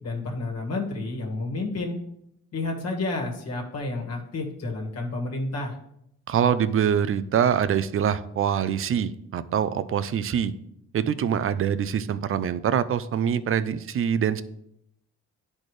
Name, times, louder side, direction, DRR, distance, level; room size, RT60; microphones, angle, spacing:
voice 1, 0.0-2.0 2.5-5.7, left 2 dB, 55° left, 0 dB, 1.6 m, -30 dB
voice 2, 6.3-10.5 10.9-14.4, right 8 dB, 45° right, 15 dB, 0.5 m, -24 dB
10.5 x 4.3 x 3.2 m, 0.76 s
cardioid pair, 90°, 30 cm